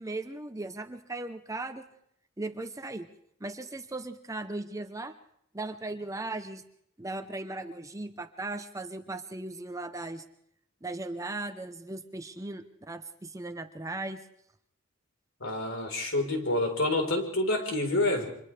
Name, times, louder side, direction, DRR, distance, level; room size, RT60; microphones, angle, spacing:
voice 1, 0.0-1.9 2.4-3.1 3.4-5.1 5.5-6.6 7.0-10.2 10.8-14.2, right 2 dB, 15° right, 8 dB, 0.8 m, -37 dB
voice 2, 15.4-18.3, left 2 dB, 70° left, 3 dB, 4.2 m, -28 dB
30.0 x 26.0 x 3.4 m, 0.72 s
head